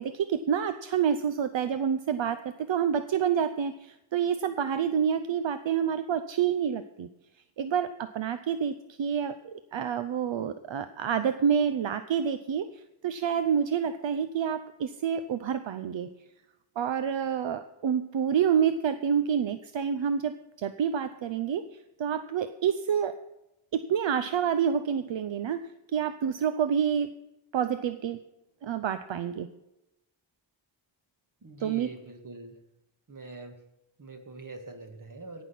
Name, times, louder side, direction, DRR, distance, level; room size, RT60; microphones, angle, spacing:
voice 1, 0.0-7.1 7.6-16.1 16.8-21.7 22.0-23.2 23.7-27.1 27.5-28.2 28.6-29.5 31.6-32.0, right 8 dB, 70° right, 11 dB, 0.7 m, -28 dB
voice 2, 31.4-32.6 33.1-33.6 34.0-35.4, right 3 dB, 40° right, 5 dB, 2.1 m, -44 dB
17.5 x 6.1 x 6.0 m, 0.90 s
wide cardioid pair, 95°, 47 cm